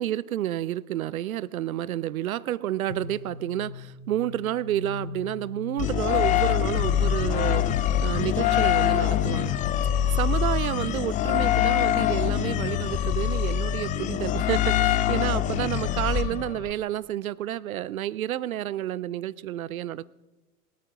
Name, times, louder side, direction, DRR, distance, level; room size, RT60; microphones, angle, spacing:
voice 1, 0.0-9.5 10.1-20.1, right 12 dB, 70° right, 21 dB, 0.6 m, -30 dB
sound 1, 2.9-10.5, left 5 dB, 75° left, 4.2 m, -40 dB
sound 2, 5.8-16.7, left 11 dB, 20° left, 0.5 m, -24 dB
20.0 x 8.4 x 5.9 m, 1.1 s
figure-of-eight pair, 80°, 44 cm